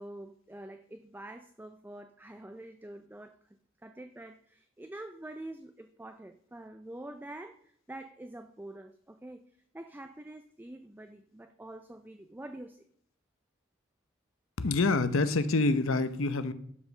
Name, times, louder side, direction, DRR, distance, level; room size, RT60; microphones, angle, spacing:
voice 1, 0.0-3.6 3.8-12.8, right 1 dB, 10° right, 7 dB, 0.4 m, -46 dB
voice 2, 14.6-16.5, left 3 dB, 80° left, 12 dB, 0.8 m, -26 dB
11.5 x 5.1 x 6.5 m, 0.68 s
head